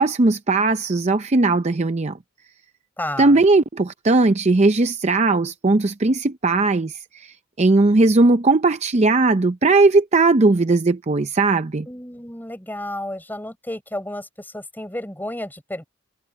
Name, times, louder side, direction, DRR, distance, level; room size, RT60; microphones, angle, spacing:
voice 1, 0.0-2.2 3.2-11.9, right 3 dB, 30° right, 0.6 m, -18 dB
voice 2, 3.0-3.4 11.9-15.8, left 1 dB, 10° left, 6.0 m, -32 dB
head